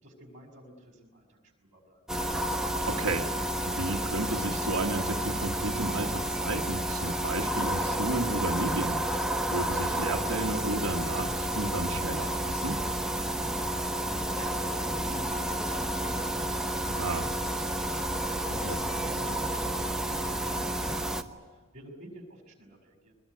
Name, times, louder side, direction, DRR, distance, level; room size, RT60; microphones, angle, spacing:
voice 1, 0.0-2.0 13.5-23.1, right 1 dB, 35° right, 3 dB, 6.1 m, -49 dB
sound 1, 2.1-21.2, right 1 dB, 5° right, 0.9 m, -30 dB
voice 2, 2.9-12.8 17.0-17.3 18.5-18.8, right 2 dB, 85° right, 2 dB, 1.5 m, -33 dB
23.0 x 21.0 x 9.7 m, 1.3 s
head